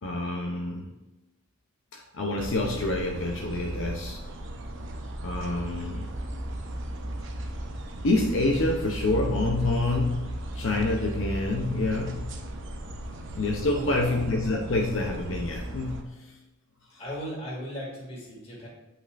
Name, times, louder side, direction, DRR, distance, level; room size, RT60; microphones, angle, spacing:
voice 1, 0.0-0.9 1.9-4.2 5.2-6.1 8.0-12.3 13.3-16.1 16.9-17.0, left 2 dB, 65° left, 0 dB, 0.7 m, -27 dB
sound 1, 2.4-16.0, right 1 dB, 60° right, 0.8 m, -36 dB
voice 2, 13.7-14.1 17.0-18.7, equal, 30° left, -5 dB, 2.3 m, -37 dB
8.6 x 5.5 x 2.5 m, 1.0 s
head